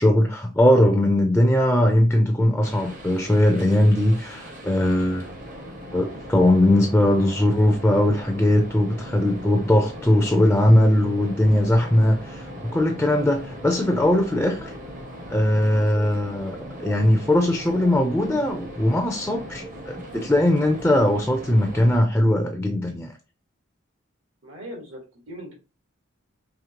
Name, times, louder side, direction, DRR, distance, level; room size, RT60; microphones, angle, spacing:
voice 1, 0.0-5.2 5.9-14.7 15.3-23.1, left 1 dB, 5° left, 0.4 m, -20 dB
sound 1, 2.6-22.0, equal, 40° right, 0.8 m, -39 dB
voice 2, 24.4-25.5, equal, 70° right, 1.5 m, -40 dB
5.0 x 3.2 x 2.9 m
head